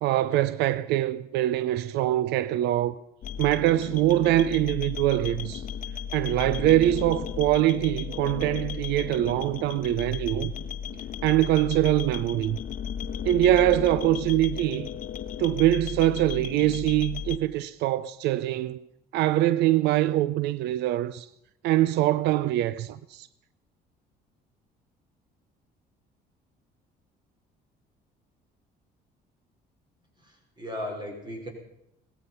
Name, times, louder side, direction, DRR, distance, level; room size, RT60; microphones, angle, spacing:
voice 1, 0.0-3.0 3.4-5.6 6.1-10.5 11.2-12.6 13.2-14.9 15.4-18.8 19.1-21.3 21.6-23.3, right 14 dB, 85° right, 0.5 m, -23 dB
sound 1, 3.2-17.4, left 8 dB, 50° left, 0.9 m, -35 dB
voice 2, 30.2-31.5, left 1 dB, 25° right, 4.9 m, -36 dB
18.0 x 14.5 x 5.6 m
cardioid pair, 110°, 17 cm